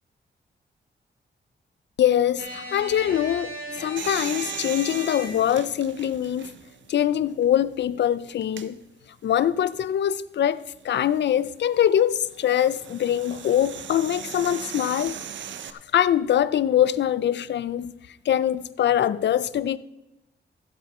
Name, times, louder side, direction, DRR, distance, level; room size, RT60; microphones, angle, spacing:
voice 1, 2.0-3.5 3.8-6.5 6.9-8.8 9.2-15.2 15.9-17.9 18.3-19.8, left 10 dB, 70° left, 0.5 m, -23 dB
sound 1, 2.4-5.6, equal, 55° right, 3.6 m, -37 dB
sound 2, 4.0-6.9 7.4-7.5 8.4-8.7 10.8-15.7, right 8 dB, 90° right, 0.7 m, -39 dB
15.0 x 8.0 x 4.3 m
cardioid pair, 95°, 19 cm